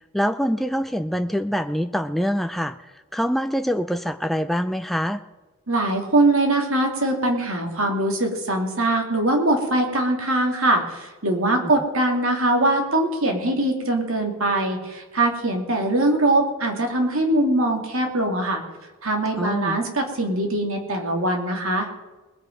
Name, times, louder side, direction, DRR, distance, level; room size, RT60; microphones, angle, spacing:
voice 1, 0.1-2.7 3.1-5.2 11.6-11.7 19.4-19.8, equal, ahead, 7 dB, 0.3 m, -24 dB
voice 2, 5.7-18.6 19.0-21.9, right 1 dB, 65° right, 3 dB, 2.6 m, -22 dB
20.5 x 8.2 x 5.3 m, 1.2 s
head